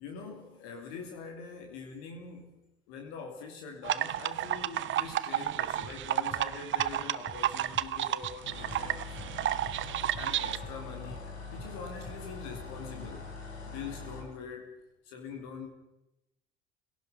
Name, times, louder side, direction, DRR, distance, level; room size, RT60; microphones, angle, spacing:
voice 1, 0.0-2.5 2.9-9.2 10.1-11.2 11.5-13.3 13.6-14.7 15.1-15.7, left 5 dB, 60° left, 3 dB, 2.9 m, -44 dB
sound 1, 3.8-10.6, right 12 dB, 35° right, 0.8 m, -31 dB
sound 2, 5.8-6.0 6.3-6.5 6.8-6.9 7.3-7.4 7.7-7.9 8.2-8.4 8.7-8.9 9.2-9.3 9.7-9.8 10.1-10.3 10.6-10.8 11.1-11.3 11.6-11.7 12.1-12.2 12.5-12.7 13.0-13.2, left 3 dB, 20° left, 3.3 m, -47 dB
sound 3, 8.4-14.3, left 4 dB, 75° left, 4.9 m, -43 dB
28.0 x 17.5 x 5.7 m, 0.91 s
figure-of-eight pair, 65°, 33 cm